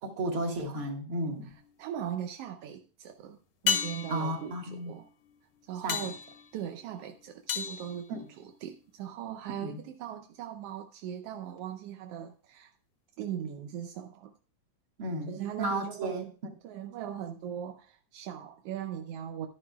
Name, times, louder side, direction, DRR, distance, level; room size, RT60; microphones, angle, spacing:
voice 1, 0.0-1.5 4.1-4.9 5.8-6.0 9.6-9.8 15.0-16.2, right 1 dB, 50° right, 2.4 m, -33 dB
sound 1, 1.3-1.9 3.7-8.8 13.3-13.4, left 7 dB, 70° left, 1.0 m, -35 dB
voice 2, 1.5-5.1 5.6-6.2 6.5-12.7 13.2-14.3 15.3-16.3 16.6-19.5, right 10 dB, 75° right, 1.4 m, -39 dB
11.0 x 11.0 x 2.4 m
omnidirectional pair, 3.4 m